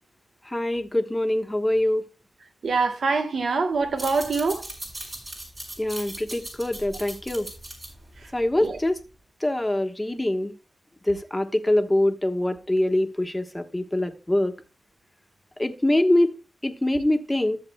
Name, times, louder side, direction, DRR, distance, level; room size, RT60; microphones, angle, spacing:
voice 1, 0.5-2.0 5.8-7.5 8.3-9.0 9.4-10.5 11.1-14.5 15.6-16.3 16.6-17.6, left 1 dB, 15° left, 1.2 m, -24 dB
voice 2, 2.6-4.6 8.6-8.8, right 4 dB, 80° right, 1.1 m, -24 dB
sound 1, 3.8-9.0, right 1 dB, 40° right, 4.5 m, -39 dB
14.0 x 7.5 x 2.2 m
cardioid pair, 50°, 0 cm